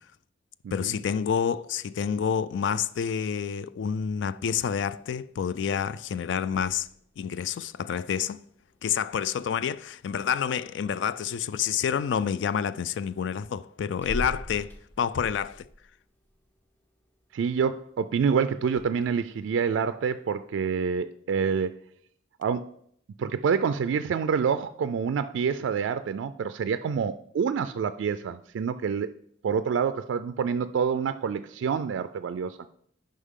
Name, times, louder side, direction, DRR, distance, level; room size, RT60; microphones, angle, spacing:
voice 1, 0.7-6.9 7.2-8.4 8.8-15.7, left 7 dB, 75° left, 0.3 m, -28 dB
sound 1, 4.2-20.9, equal, 10° left, 0.9 m, -47 dB
voice 2, 17.3-21.8 22.4-22.7 23.2-29.1 29.4-32.6, right 6 dB, 85° right, 0.3 m, -27 dB
10.0 x 5.4 x 3.7 m
head